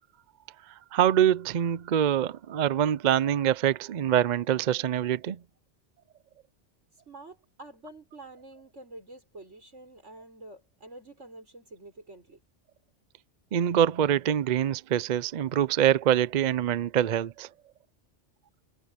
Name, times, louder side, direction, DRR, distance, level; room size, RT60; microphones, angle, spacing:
voice 1, 0.9-5.4 13.5-17.5, right 10 dB, 55° right, 0.5 m, -25 dB
voice 2, 7.1-12.4, right 2 dB, 75° right, 6.3 m, -48 dB
omnidirectional pair, 1.2 m